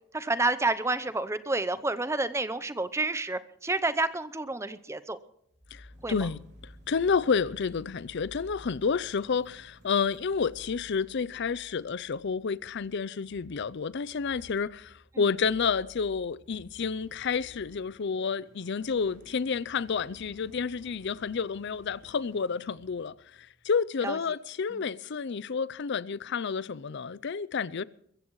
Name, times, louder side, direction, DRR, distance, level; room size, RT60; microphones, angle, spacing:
voice 1, 0.1-5.2 6.0-6.3 15.1-15.3 24.0-24.2 24.7-24.8, right 2 dB, 15° right, 0.7 m, -29 dB
sound 1, 5.5-23.7, equal, 35° right, 4.5 m, -55 dB
voice 2, 5.7-6.4 6.9-27.8, left 5 dB, 55° left, 0.5 m, -30 dB
sound 2, 5.9-11.0, equal, 50° right, 3.1 m, -59 dB
sound 3, 16.8-22.4, left 1 dB, 80° right, 6.3 m, -62 dB
23.0 x 14.5 x 3.1 m
head